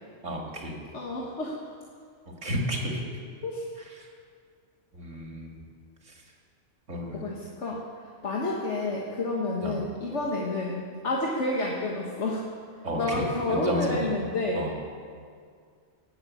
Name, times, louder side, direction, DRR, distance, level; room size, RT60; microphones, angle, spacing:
voice 1, 0.2-0.8 2.4-3.0 4.9-5.6 6.1-6.2 6.9-7.2 9.6-9.8 12.8-14.2 14.5-14.7, equal, 75° right, 0 dB, 2.6 m, -32 dB
voice 2, 0.9-1.6 3.4-3.6 7.1-7.8 8.2-12.5 13.0-14.7, left 2 dB, 65° left, -3 dB, 1.8 m, -29 dB
17.5 x 8.0 x 8.4 m, 2.1 s
omnidirectional pair, 1.3 m